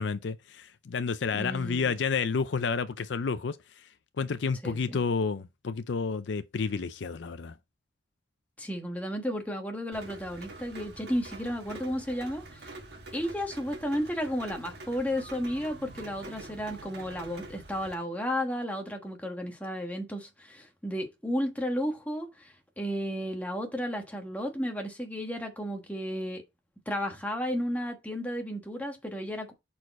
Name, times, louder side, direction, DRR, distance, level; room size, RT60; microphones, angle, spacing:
voice 1, 0.0-3.9 4.2-7.5, left 5 dB, 70° left, 0.5 m, -30 dB
voice 2, 1.3-1.9 4.6-5.0 8.6-12.7 13.1-26.4 26.9-29.5, equal, 10° left, 1.2 m, -33 dB
Rain, 9.9-17.9, right 2 dB, 55° right, 1.5 m, -45 dB
6.4 x 4.3 x 4.1 m
head